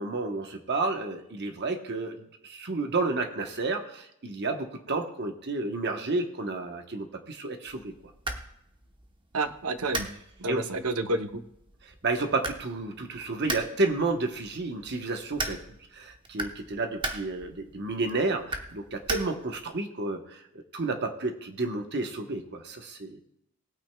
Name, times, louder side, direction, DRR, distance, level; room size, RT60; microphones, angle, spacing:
voice 1, 0.0-7.9 10.5-10.6 12.0-15.6 15.9-20.5 20.7-23.2, right 3 dB, 50° right, 4 dB, 1.0 m, -31 dB
sound 1, 7.7-19.7, right 3 dB, 20° right, 0.9 m, -39 dB
voice 2, 9.3-10.1 10.4-11.4, right 2 dB, 70° right, 9 dB, 0.8 m, -29 dB
19.5 x 8.9 x 2.3 m, 0.78 s
head